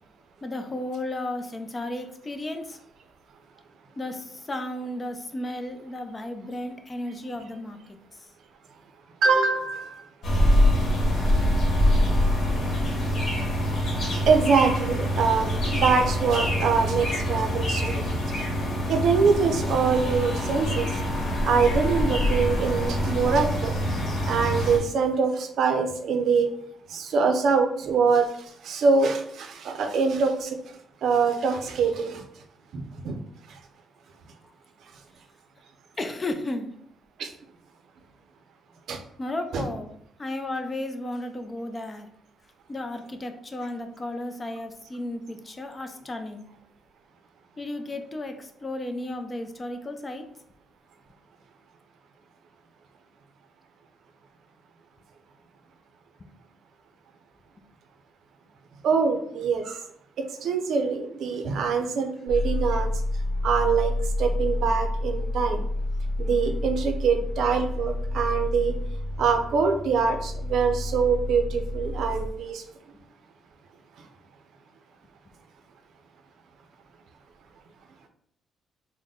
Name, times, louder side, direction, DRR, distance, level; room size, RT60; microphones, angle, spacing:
voice 1, 0.4-2.8 4.0-7.8 8.1-8.3 34.4-34.5 36.0-36.7 39.2-39.9 40.2-42.1 42.7-46.4 47.6-50.2, left 1 dB, 25° left, 7 dB, 0.5 m, -34 dB
voice 2, 9.2-10.0 14.1-18.0 18.9-20.9 21.4-23.7 24.2-26.5 26.9-28.3 28.6-30.6 31.0-32.2 32.7-33.2 37.2-37.3 38.9-39.0 39.5-39.7 58.8-59.8 60.2-62.9 63.4-63.9 64.2-65.6 66.2-68.7 69.2-72.6, right 5 dB, 70° right, 6 dB, 0.5 m, -24 dB
sound 1, 10.2-24.8, equal, 60° left, 1.2 m, -25 dB
sound 2, 62.3-72.3, left 1 dB, 75° left, 0.6 m, -29 dB
3.8 x 2.1 x 3.6 m, 0.68 s
cardioid pair, 90°, 0 cm